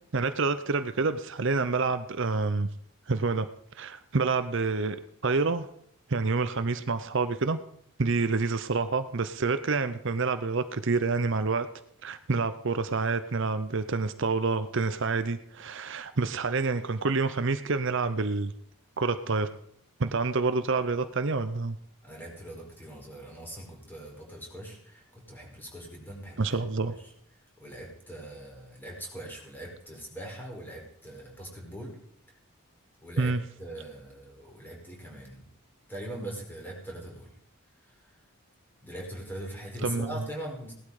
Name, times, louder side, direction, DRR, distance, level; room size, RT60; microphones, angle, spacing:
voice 1, 0.1-2.7 3.1-3.5 3.8-5.0 5.2-5.7 6.1-7.6 8.0-11.7 12.0-18.5 19.0-19.5 20.0-21.8 26.4-26.9 33.2-33.4 39.8-40.1, right 4 dB, 55° right, 11 dB, 0.7 m, -28 dB
voice 2, 22.0-27.1 27.6-32.0 33.0-33.3 33.6-35.4 35.9-37.3 37.8-38.2 38.8-40.7, right 1 dB, 10° left, -1 dB, 5.0 m, -41 dB
17.5 x 12.0 x 5.0 m, 0.69 s
head